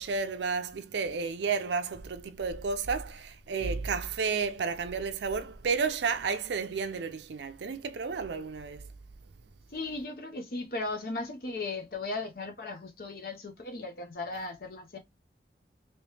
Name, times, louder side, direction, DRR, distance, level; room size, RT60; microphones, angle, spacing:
voice 1, 0.0-8.9, right 5 dB, 80° right, 0.5 m, -32 dB
voice 2, 9.7-15.0, left 3 dB, 55° left, 0.7 m, -37 dB
3.1 x 3.0 x 3.2 m
head